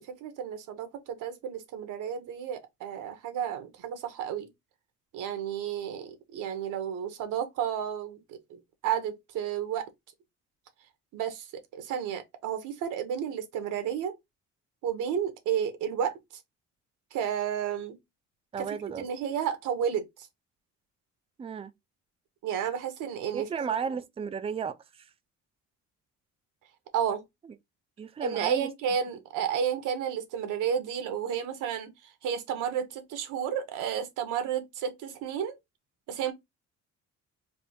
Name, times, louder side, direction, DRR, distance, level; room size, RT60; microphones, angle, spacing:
voice 1, 0.0-4.5 5.1-9.9 11.1-11.5 11.7-14.1 14.8-16.1 17.1-18.0 18.6-18.7 19.0-20.1 22.4-23.5 26.9-27.2 28.2-35.6 36.1-36.3, right 8 dB, 85° right, 0.9 m, -32 dB
voice 2, 18.5-19.1 21.4-21.7 23.3-25.1 28.0-28.7, right 6 dB, 20° right, 0.4 m, -34 dB
3.4 x 2.0 x 4.2 m
cardioid pair, 90°, 30 cm